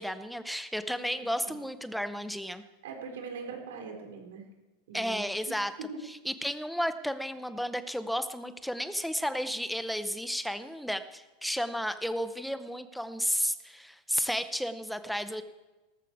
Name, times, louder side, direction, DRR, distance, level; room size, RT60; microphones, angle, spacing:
voice 1, 0.0-2.6 4.9-5.7 6.3-15.4, equal, ahead, 11 dB, 0.6 m, -32 dB
voice 2, 1.0-1.5 2.8-4.4 4.9-6.0, right 4 dB, 90° right, 3 dB, 4.3 m, -42 dB
18.0 x 14.0 x 4.7 m, 1.2 s
supercardioid pair, 175°, 0 cm